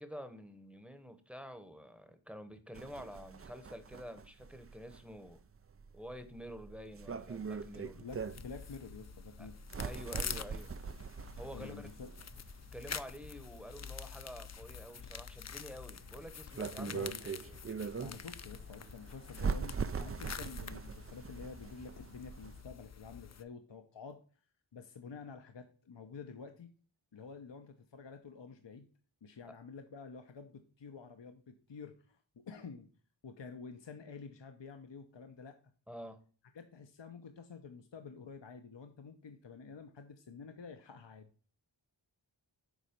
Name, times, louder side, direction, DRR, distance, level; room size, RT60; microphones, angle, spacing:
voice 1, 0.0-5.4 5.9-8.0 9.4-9.5 9.8-10.7 11.4-11.9 12.7-17.6 29.5-29.6 35.9-36.2, equal, 5° right, 9 dB, 0.9 m, -48 dB
sound 1, 2.7-22.6, right 5 dB, 35° right, 0.4 m, -42 dB
voice 2, 7.7-9.6 11.5-12.1 16.8-17.2 18.0-24.2 24.7-26.7 27.1-28.9 29.2-32.9 33.2-35.6 36.5-41.3, left 5 dB, 70° left, 6 dB, 0.8 m, -49 dB
sound 2, 8.1-23.4, left 7 dB, 40° left, 0.4 m, -47 dB
7.1 x 4.2 x 5.1 m, 0.40 s
wide cardioid pair, 50°, 46 cm